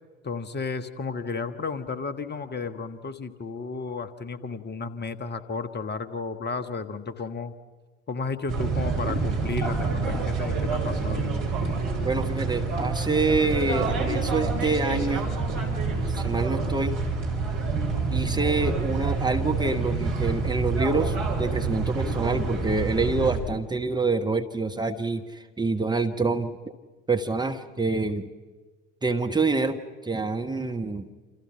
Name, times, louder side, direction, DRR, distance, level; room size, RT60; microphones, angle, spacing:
voice 1, 0.2-7.5 8.1-11.2, left 4 dB, 25° left, 12 dB, 1.6 m, -33 dB
sound 1, 8.5-23.4, right 4 dB, 55° right, 5.5 m, -27 dB
voice 2, 12.0-15.3 16.1-17.0 18.1-26.5 27.1-28.2 29.0-31.1, right 3 dB, 10° right, 5 dB, 1.3 m, -26 dB
28.0 x 28.0 x 5.8 m, 1.4 s
figure-of-eight pair, 65°, 38 cm